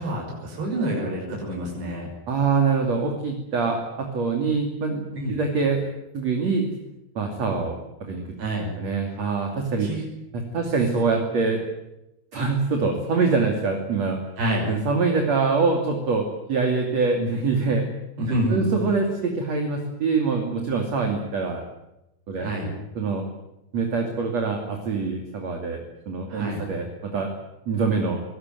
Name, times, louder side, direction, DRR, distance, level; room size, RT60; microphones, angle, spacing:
voice 1, 0.0-2.1 5.1-5.3 8.4-8.7 9.8-10.0 14.4-14.7 18.2-18.7 22.4-22.7 26.3-26.6, right 1 dB, 80° right, -1 dB, 8.1 m, -27 dB
voice 2, 2.3-5.0 5.3-6.7 7.2-8.2 8.8-9.9 10.3-11.6 12.3-14.2 14.7-17.9 18.5-21.6 22.3-22.5 23.0-23.3 23.7-27.3 27.7-28.2, right 4 dB, 45° right, 2 dB, 3.5 m, -24 dB
22.5 x 20.0 x 9.3 m, 0.89 s
omnidirectional pair, 4.7 m